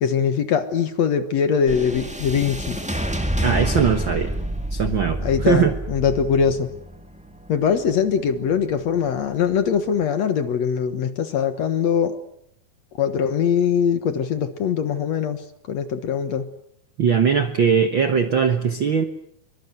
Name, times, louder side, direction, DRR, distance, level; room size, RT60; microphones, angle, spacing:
voice 1, 0.0-2.8 5.2-6.7 7.5-12.2 13.0-15.4 15.7-16.5, left 7 dB, 60° left, 10 dB, 2.1 m, -22 dB
sound 1, 1.7-10.1, right 1 dB, 5° right, 0.5 m, -29 dB
voice 2, 3.4-4.3 4.7-5.7 17.0-19.0, right 6 dB, 70° right, 9 dB, 1.1 m, -20 dB
25.0 x 24.0 x 8.0 m, 0.71 s
omnidirectional pair, 4.2 m